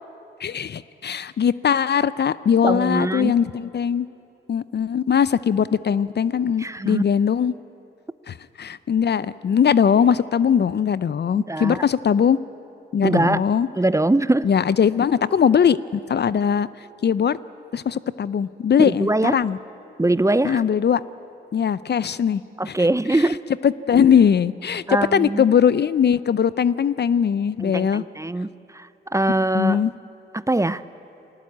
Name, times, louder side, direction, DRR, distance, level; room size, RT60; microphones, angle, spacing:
voice 1, 0.4-4.1 4.5-7.5 8.3-12.4 12.9-13.7 14.4-16.7 17.0-17.4 17.7-19.6 20.4-21.0 21.5-22.4 22.7-22.8 23.1-23.3 23.6-24.8 25.1-28.0 29.5-29.9, left 7 dB, 55° left, 17 dB, 0.6 m, -20 dB
voice 2, 2.6-3.4 6.6-7.0 11.3-11.8 13.0-13.4 13.8-14.5 18.8-19.4 20.0-20.6 22.6-23.4 24.9-25.4 27.6-28.5 28.7-29.8 30.3-30.8, right 2 dB, 15° right, 16 dB, 0.7 m, -22 dB
23.0 x 19.0 x 8.7 m, 2.8 s
supercardioid pair, 50°, 21 cm